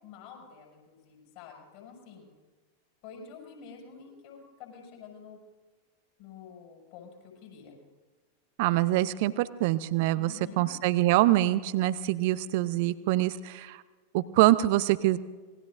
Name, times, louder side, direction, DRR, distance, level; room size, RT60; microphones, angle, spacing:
voice 1, 0.0-2.3 3.0-5.4 6.2-7.8 10.1-10.7, left 6 dB, 45° left, 1 dB, 6.4 m, -48 dB
voice 2, 8.6-13.8 14.1-15.2, right 16 dB, 50° right, 15 dB, 0.7 m, -25 dB
26.5 x 20.0 x 2.6 m, 1.4 s
figure-of-eight pair, 90°, 0 cm